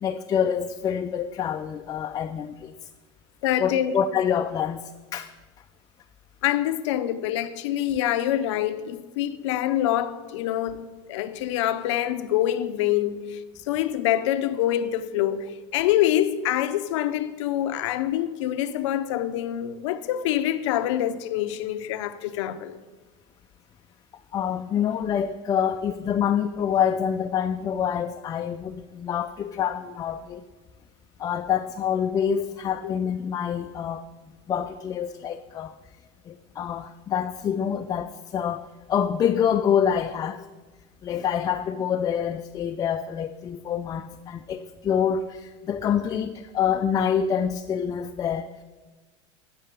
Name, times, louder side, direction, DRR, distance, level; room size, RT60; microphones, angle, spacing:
voice 1, 0.0-2.7 3.6-5.3 24.3-30.4 31.2-34.1 34.5-35.7 36.3-40.4 41.0-48.6, left 8 dB, 25° left, 0.3 m, -26 dB
voice 2, 3.4-3.9 6.4-13.4 13.7-22.8 32.8-32.9, left 12 dB, 75° left, 0.6 m, -25 dB
10.0 x 5.6 x 6.6 m
supercardioid pair, 115°, 15 cm